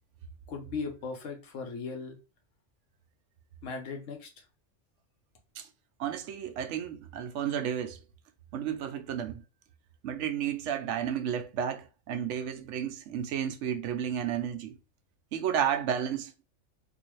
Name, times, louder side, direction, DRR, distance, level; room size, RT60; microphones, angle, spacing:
voice 1, 0.5-2.2 3.6-4.4, left 4 dB, 85° left, 1.2 m, -38 dB
voice 2, 6.0-8.0 8.5-9.4 10.0-14.8 15.3-16.4, right 9 dB, 75° right, 0.9 m, -32 dB
3.8 x 2.5 x 3.0 m
omnidirectional pair, 1.3 m